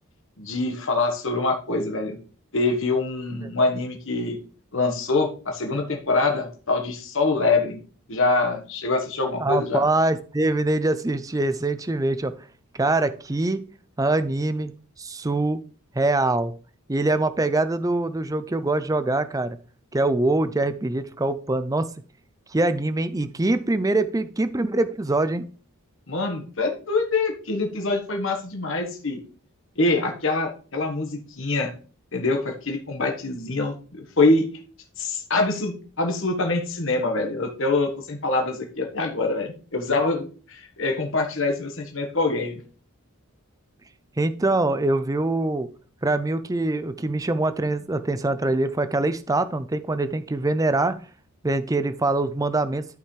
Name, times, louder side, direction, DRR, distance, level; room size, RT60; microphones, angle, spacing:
voice 1, 0.4-2.2 2.5-4.4 4.7-7.8 8.1-9.8 26.1-29.2 29.8-31.7 32.1-34.5 35.0-42.6, left 3 dB, 60° left, 2 dB, 1.4 m, -24 dB
voice 2, 9.4-12.3 12.7-13.6 14.0-14.7 15.0-15.6 16.0-16.5 16.9-19.6 19.9-21.9 22.5-25.5 44.2-45.7 46.0-51.0 51.4-52.8, right 2 dB, 15° right, 12 dB, 0.4 m, -24 dB
13.0 x 5.6 x 3.3 m, 0.39 s
head